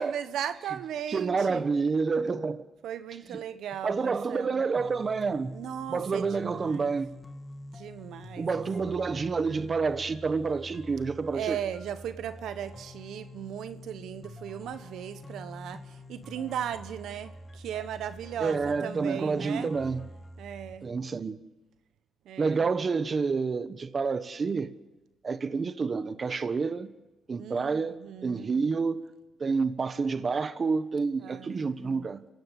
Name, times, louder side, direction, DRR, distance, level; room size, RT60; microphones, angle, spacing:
voice 1, 0.0-1.7 2.8-4.6 5.5-6.9 7.7-8.5 8.8-9.0 11.3-19.7 20.4-20.9 22.2-22.6 27.4-28.5 31.2-32.1, right 9 dB, 75° right, 1.1 m, -37 dB
voice 2, 1.1-2.6 3.3-3.4 3.8-5.5 5.9-7.1 8.4-11.6 18.4-20.0 20.8-21.4 22.4-24.7 25.2-26.9 27.3-29.1 29.4-32.2, right 4 dB, 35° right, 1.3 m, -28 dB
sound 1, 4.7-20.7, left 1 dB, 15° left, 2.0 m, -46 dB
28.5 x 16.0 x 8.3 m
cardioid pair, 90°, 0 cm